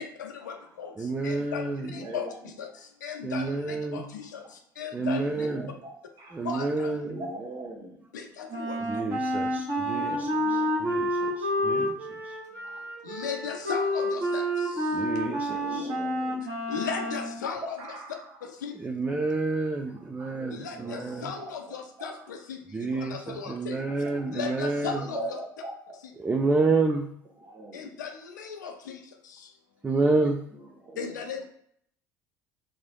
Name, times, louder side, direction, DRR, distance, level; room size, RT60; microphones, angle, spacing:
voice 1, 0.0-5.5 6.4-6.9 8.1-9.1 13.0-15.0 16.7-17.8 18.4-18.8 20.5-23.8 24.3-25.2 27.7-29.5 31.0-31.4, left 6 dB, 75° left, 4 dB, 0.5 m, -37 dB
voice 2, 1.0-2.0 3.2-4.1 4.9-5.7 6.3-7.2 8.8-12.0 12.2-12.3 14.9-15.9 18.7-21.3 22.7-25.0 26.2-27.0 29.8-30.4, right 3 dB, 15° right, 2 dB, 0.4 m, -29 dB
voice 3, 1.9-2.4 5.2-6.5 7.0-8.0 10.0-10.9 11.2-11.8 12.1-12.2 12.6-12.9 15.6-16.4 16.8-16.9 17.6-18.3 20.2-22.1 23.9-24.3 24.9-25.7 27.4-28.0 30.8-31.2, right 2 dB, 40° right, 1 dB, 1.2 m, -41 dB
Wind instrument woodwind instrument, 8.5-17.4, equal, 55° right, 1.4 m, -29 dB
3.8 x 3.1 x 2.3 m, 0.66 s
figure-of-eight pair, 60°, 10 cm